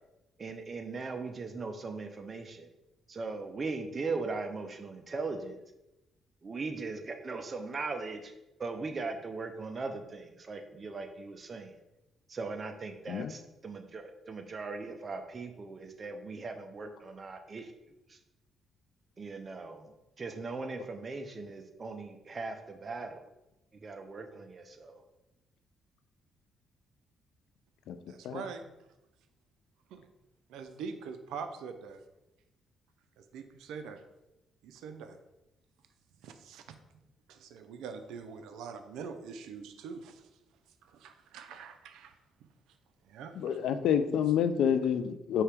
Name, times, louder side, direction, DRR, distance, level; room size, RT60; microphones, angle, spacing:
voice 1, 0.4-2.7 3.1-5.6 6.4-8.3 8.6-11.8 12.3-17.7 18.1-18.2 19.2-19.9 20.2-23.2 23.8-25.0, right 3 dB, 35° right, 6 dB, 0.5 m, -39 dB
voice 2, 28.1-28.6 29.9-30.1 30.5-32.0 33.2-34.0 34.6-35.2 36.2-36.8 37.3-40.3 40.8-42.2 43.0-43.6, right 6 dB, 85° right, 8 dB, 0.4 m, -44 dB
voice 3, 43.4-45.4, left 8 dB, 80° left, 10 dB, 0.3 m, -28 dB
4.6 x 2.8 x 3.4 m, 0.96 s
cardioid pair, 90°, 0 cm